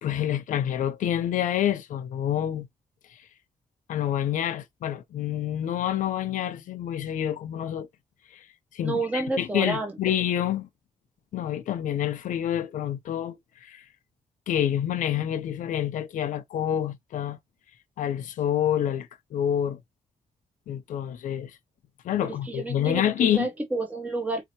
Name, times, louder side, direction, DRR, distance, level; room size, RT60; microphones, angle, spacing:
voice 1, 0.0-2.7 3.9-7.9 8.3-8.4 8.7-10.7 11.3-13.8 14.5-17.4 18.0-19.8 20.7-21.6 22.0-23.5, left 10 dB, 85° left, 0.7 m, -27 dB
voice 2, 8.8-9.9 22.2-24.4, right 2 dB, 10° right, 0.7 m, -30 dB
3.9 x 2.8 x 2.9 m
wide cardioid pair, 170°, 13 cm